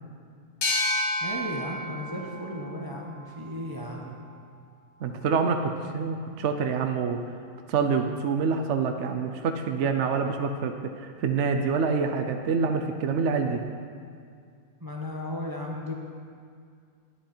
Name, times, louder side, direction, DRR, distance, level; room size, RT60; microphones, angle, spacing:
sound 1, 0.6-4.0, left 1 dB, 65° left, 1.6 m, -31 dB
voice 1, 1.2-4.2 14.8-15.9, left 1 dB, 15° right, -1 dB, 0.9 m, -35 dB
voice 2, 5.0-7.2 7.7-13.6, right 5 dB, 60° right, 5 dB, 0.8 m, -26 dB
11.0 x 10.5 x 4.4 m, 2.2 s
omnidirectional pair, 1.6 m